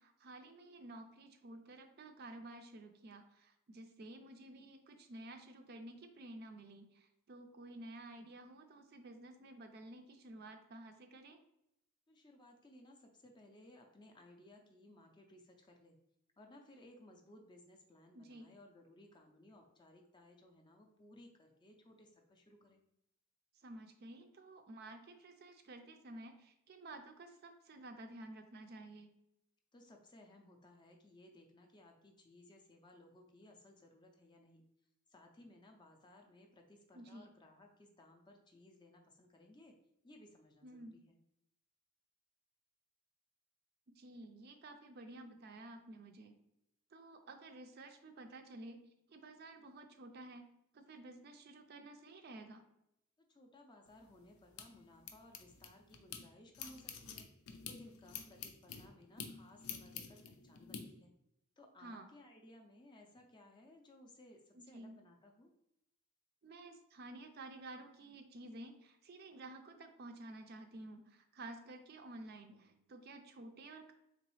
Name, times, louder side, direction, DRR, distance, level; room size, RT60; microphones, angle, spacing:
voice 1, 0.0-11.4 18.1-18.5 23.6-29.1 36.9-37.3 40.6-41.0 44.0-46.3 46.9-48.8 49.1-50.5 50.7-52.6 61.8-62.1 64.5-65.0 66.4-73.9, right 2 dB, 45° right, 6 dB, 0.4 m, -52 dB
voice 2, 12.1-16.0 16.4-22.8 29.7-34.6 35.1-39.7 40.0-41.2 53.3-57.3 57.6-61.1 61.6-65.5, left 1 dB, 20° left, 3 dB, 0.4 m, -60 dB
sound 1, 53.9-56.2 56.5-60.8, left 7 dB, 75° left, 0.5 m, -49 dB
3.9 x 3.0 x 3.0 m, 0.82 s
head